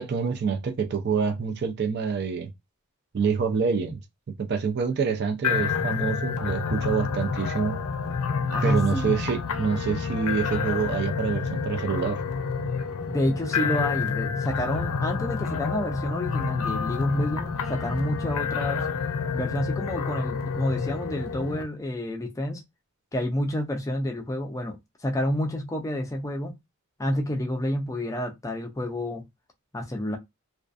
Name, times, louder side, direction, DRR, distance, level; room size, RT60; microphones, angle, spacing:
voice 1, 0.0-2.5 3.1-4.0 4.4-7.8 8.6-12.2, right 6 dB, 50° right, 0.4 m, -26 dB
sound 1, 5.4-21.6, left 5 dB, 75° left, 0.5 m, -29 dB
voice 2, 8.5-9.2 13.1-18.9 19.3-22.6 23.1-24.8 25.0-26.6 27.0-29.2 29.7-30.2, left 1 dB, 15° left, 0.4 m, -29 dB
2.4 x 2.3 x 2.4 m
head